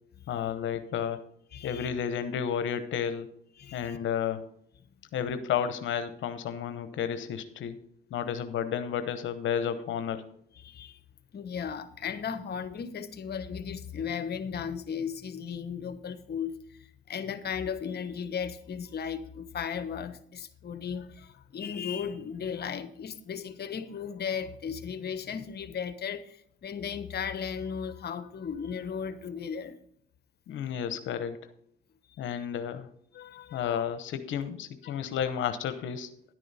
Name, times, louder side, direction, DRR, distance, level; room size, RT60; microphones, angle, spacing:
voice 1, 0.3-1.2 1.6-3.3 3.7-4.4 5.1-7.8 8.1-10.2 30.5-31.4 32.2-32.9 33.5-36.1, left 8 dB, 75° left, 0.9 m, -32 dB
voice 2, 1.5-1.9 3.6-4.0 10.5-11.0 11.3-29.8 33.1-33.8 34.8-35.0, left 7 dB, 55° left, 1.1 m, -36 dB
11.0 x 9.2 x 4.1 m
cardioid pair, 90°, 20 cm